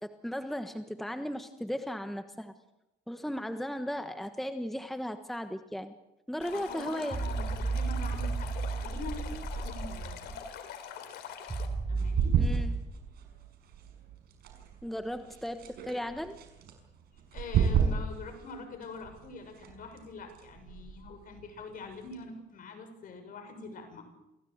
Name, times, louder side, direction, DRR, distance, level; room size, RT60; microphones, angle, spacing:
voice 1, 0.0-2.5 3.1-6.0 6.3-7.2 12.4-12.7 14.8-16.4, equal, ahead, 8 dB, 1.3 m, -36 dB
Stream, 6.4-11.7, left 8 dB, 75° left, 3.6 m, -44 dB
voice 2, 6.5-10.4 11.9-12.4 17.3-24.0, left 3 dB, 55° left, 6 dB, 7.0 m, -44 dB
sound 1, 7.1-10.3 11.5-12.8, right 4 dB, 25° right, 7.6 m, -33 dB
sound 2, 11.9-22.2, right 7 dB, 65° right, 5.9 m, -34 dB
27.5 x 17.0 x 8.1 m, 0.95 s
cardioid pair, 110°, 17 cm